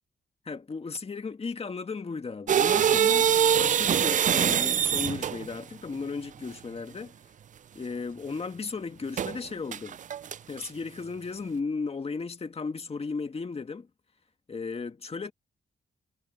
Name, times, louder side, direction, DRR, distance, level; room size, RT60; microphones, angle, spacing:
voice 1, 0.5-7.2 7.7-10.0 10.5-13.9 14.5-15.3, left 4 dB, 35° left, 1.9 m, -35 dB
sound 1, 2.5-5.5 9.2-9.4 9.7-10.7, right 9 dB, 45° right, 0.4 m, -23 dB
cardioid pair, 100°, 18 cm